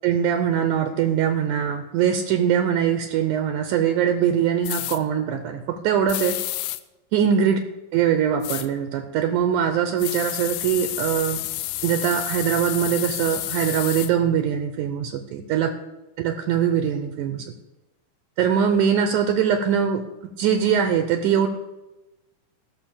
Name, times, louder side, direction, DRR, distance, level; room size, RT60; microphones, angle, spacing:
voice 1, 0.0-6.4 7.1-7.6 7.9-11.4 11.8-15.7 16.2-17.5 18.4-21.5, right 8 dB, 75° right, 8 dB, 2.0 m, -22 dB
sound 1, 4.6-5.0 6.1-6.8 8.4-8.7 10.0-14.1, left 15 dB, 85° left, 1.8 m, -30 dB
14.5 x 6.2 x 6.8 m, 1.0 s
omnidirectional pair, 4.0 m